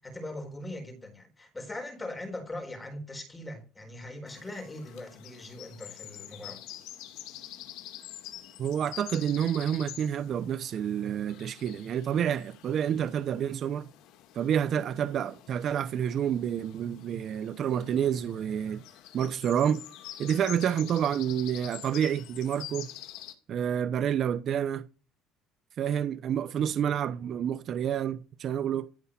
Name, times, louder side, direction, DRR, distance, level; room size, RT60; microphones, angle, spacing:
voice 1, 0.0-6.6, left 1 dB, 10° left, 4.1 m, -40 dB
sound 1, 4.3-23.3, left 12 dB, 70° left, 2.1 m, -47 dB
voice 2, 8.6-13.9 14.3-18.8 19.1-19.8 20.2-22.9 23.5-24.8 25.8-28.9, right 9 dB, 45° right, 0.9 m, -29 dB
15.0 x 5.5 x 8.5 m
cardioid pair, 140°, 0 cm